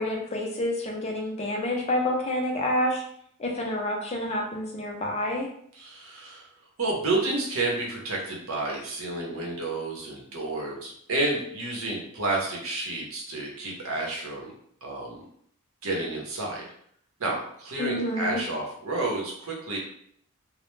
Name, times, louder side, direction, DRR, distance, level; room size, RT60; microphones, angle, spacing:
voice 1, 0.0-3.0 3.4-5.5 17.8-18.4, left 1 dB, 30° left, 0 dB, 0.4 m, -28 dB
voice 2, 5.8-6.5 6.8-14.5 14.8-15.2 15.8-16.6 17.2-19.8, right 2 dB, 70° right, -1 dB, 0.7 m, -30 dB
2.1 x 2.0 x 3.0 m, 0.67 s
head